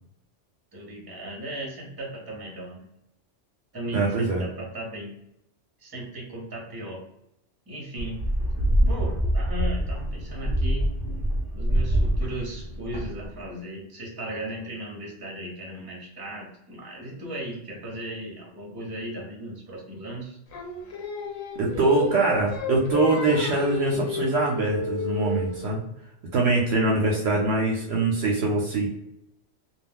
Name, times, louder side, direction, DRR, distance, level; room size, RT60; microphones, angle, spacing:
voice 1, 0.7-2.9 3.7-5.1 5.8-7.0 7.7-8.2 8.9-10.9 11.5-20.4 26.9-27.4, right 1 dB, 20° right, -2 dB, 0.7 m, -36 dB
voice 2, 3.9-4.4 21.6-25.8 26.3-28.9, right 2 dB, 65° right, -1 dB, 0.8 m, -23 dB
sound 1, 8.0-13.5, equal, 55° left, 0.7 m, -25 dB
Singing, 20.5-25.7, left 4 dB, 85° left, 1.0 m, -32 dB
2.3 x 2.2 x 3.4 m, 0.81 s
omnidirectional pair, 1.3 m